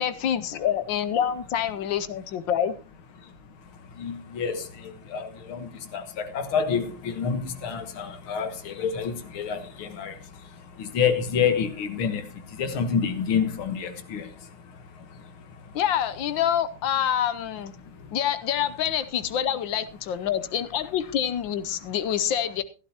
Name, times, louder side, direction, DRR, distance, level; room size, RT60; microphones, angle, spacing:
voice 1, 0.0-2.7 15.7-17.7 18.1-22.6, left 9 dB, 70° left, 13 dB, 1.4 m, -26 dB
voice 2, 3.2-15.8 17.8-18.2 21.8-21.9, left 6 dB, 85° left, 8 dB, 2.2 m, -29 dB
14.5 x 12.0 x 2.9 m, 0.33 s
omnidirectional pair, 2.2 m